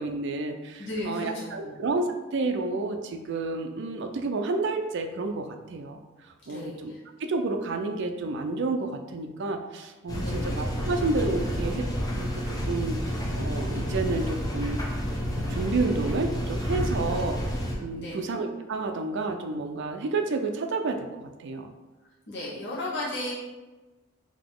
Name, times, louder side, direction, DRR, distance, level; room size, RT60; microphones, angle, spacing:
voice 1, 0.0-6.0 6.5-6.9 7.2-11.9 12.2-14.8 15.5-17.4 17.8-21.7, right 3 dB, 60° right, 5 dB, 0.4 m, -30 dB
voice 2, 0.8-1.8 6.5-6.9 10.2-10.5 17.1-17.3 17.9-18.2 22.3-23.3, left 1 dB, 55° left, -8 dB, 1.1 m, -35 dB
sound 1, 10.1-17.7, equal, 20° left, 0.6 m, -30 dB
3.9 x 2.8 x 3.7 m, 1.2 s
head